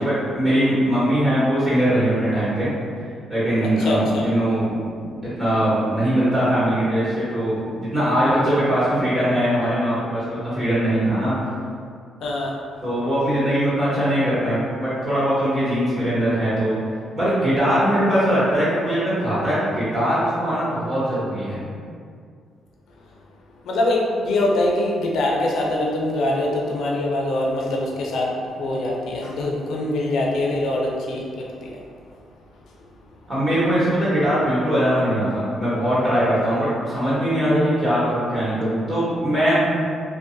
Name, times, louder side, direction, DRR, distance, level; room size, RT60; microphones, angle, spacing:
voice 1, 0.0-2.7 3.3-4.7 5.4-11.5 12.8-16.7 17.1-21.6 33.3-39.7, equal, 35° right, -11 dB, 1.3 m, -21 dB
voice 2, 3.8-4.3 12.2-12.6 23.6-31.8, left 1 dB, 70° left, -2 dB, 0.4 m, -23 dB
2.6 x 2.1 x 2.5 m, 2.2 s
cardioid pair, 90°, 0 cm